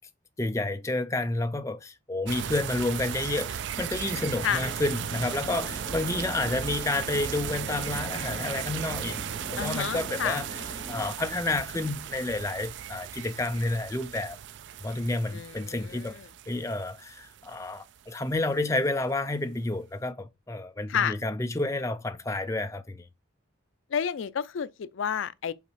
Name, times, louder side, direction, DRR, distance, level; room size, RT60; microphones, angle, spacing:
voice 1, 0.4-9.2 9.5-10.5 10.9-14.4 14.8-16.2 16.5-23.0, left 2 dB, 15° left, 0.5 m, -30 dB
sound 1, 2.3-18.1, right 9 dB, 60° right, 0.3 m, -36 dB
sound 2, 4.0-11.1, left 1 dB, 10° right, 2.1 m, -42 dB
voice 2, 9.6-10.4 15.3-16.3 20.9-21.2 23.9-25.5, left 8 dB, 70° left, 0.4 m, -30 dB
5.8 x 4.0 x 4.6 m
head